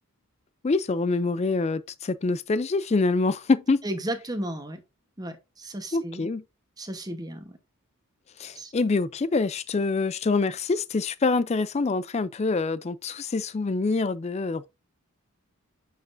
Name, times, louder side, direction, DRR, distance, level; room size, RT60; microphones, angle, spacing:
voice 1, 0.6-3.8 5.9-6.4 8.4-14.7, left 3 dB, 30° left, 0.3 m, -25 dB
voice 2, 3.8-4.8 5.2-6.3 6.8-7.6 8.5-8.7, right 1 dB, 15° right, 1.0 m, -34 dB
7.6 x 5.9 x 2.5 m
head